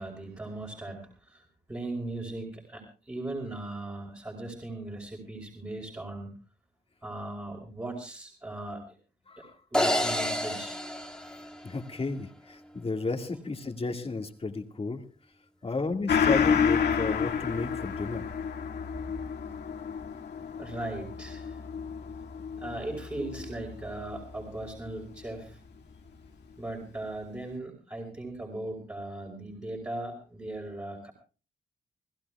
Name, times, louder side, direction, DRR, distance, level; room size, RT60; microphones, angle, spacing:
voice 1, 0.0-6.3 7.0-8.8 9.4-9.5 9.7-10.8 13.3-13.4 20.6-21.6 22.6-25.6 26.6-31.1, right 2 dB, 15° right, -3 dB, 4.5 m, -38 dB
sound 1, 9.7-12.1, equal, 5° left, 2.1 m, -29 dB
voice 2, 11.3-15.0 15.6-18.3, left 3 dB, 35° left, 4 dB, 2.0 m, -33 dB
Gong, 16.1-25.0 25.4-25.5, left 7 dB, 80° left, 2.0 m, -30 dB
28.5 x 16.0 x 2.4 m, 0.36 s
cardioid pair, 85°, 17 cm